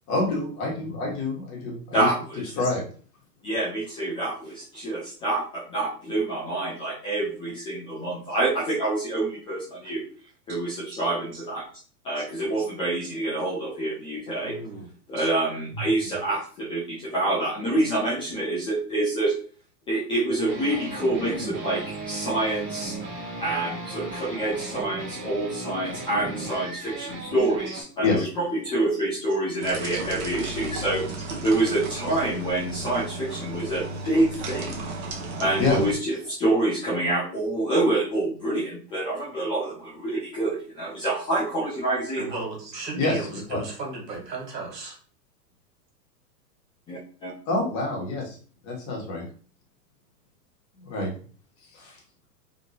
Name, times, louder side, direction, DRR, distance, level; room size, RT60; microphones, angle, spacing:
voice 1, 0.1-2.1 2.6-2.8 15.7-15.8 28.0-28.3 35.6-35.8 43.0-43.2 43.5-43.6 47.5-48.4 48.6-49.3 50.8-51.1 51.7-51.9, left 3 dB, 35° left, -2 dB, 1.3 m, -26 dB
voice 2, 1.9-2.5 3.4-10.1 10.5-11.6 12.0-14.5 15.1-19.3 19.9-23.0 23.4-34.8 35.4-42.2 46.9-47.3, right 2 dB, 10° left, -6 dB, 0.4 m, -27 dB
voice 3, 14.4-14.9 15.1-15.3 27.7-27.8 29.9-30.0 42.1-45.0, right 3 dB, 80° right, 0 dB, 1.5 m, -35 dB
sound 1, 20.5-27.8, right 2 dB, 35° right, 1.1 m, -36 dB
sound 2, 29.6-35.9, right 2 dB, 60° right, 0.9 m, -34 dB
3.0 x 2.8 x 2.7 m, 0.42 s
hypercardioid pair, 115°, 49 cm